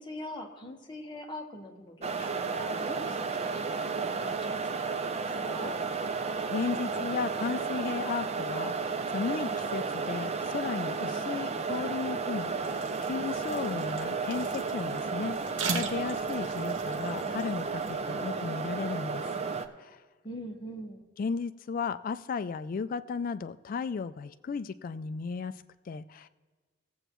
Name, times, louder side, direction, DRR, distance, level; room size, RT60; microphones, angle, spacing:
voice 1, 0.0-5.8 20.2-21.1, left 1 dB, 25° left, 1 dB, 1.2 m, -43 dB
sound 1, 2.0-19.7, right 4 dB, 35° right, 0.5 m, -33 dB
voice 2, 6.5-19.3 19.8-20.0 21.2-25.5 25.9-26.3, left 5 dB, 45° left, 13 dB, 0.3 m, -35 dB
sound 2, 12.4-17.9, right 4 dB, 70° right, 0.8 m, -40 dB
18.5 x 7.8 x 3.0 m, 1.4 s
head